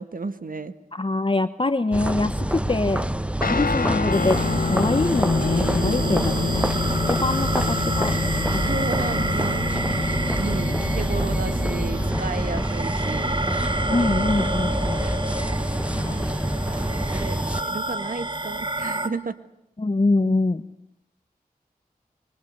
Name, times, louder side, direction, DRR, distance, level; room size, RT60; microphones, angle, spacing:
voice 1, 0.0-0.7 5.8-6.9 8.6-9.7 10.4-13.8 16.0-16.4 16.8-19.3, right 3 dB, 65° right, 11 dB, 1.8 m, -33 dB
voice 2, 0.9-3.1 3.4-4.4 4.6-6.6 7.1-8.1 8.8-8.9 13.9-15.1 15.9-16.4 19.8-20.6, left 2 dB, 35° left, 11 dB, 1.3 m, -24 dB
sound 1, 1.9-17.6, right 1 dB, 10° right, 1.0 m, -26 dB
Guitar, 3.4-12.2, left 5 dB, 70° left, 1.8 m, -29 dB
sound 2, 4.1-19.1, right 1 dB, 30° right, 2.4 m, -29 dB
26.0 x 24.5 x 8.1 m, 0.83 s
wide cardioid pair, 55°, 15 cm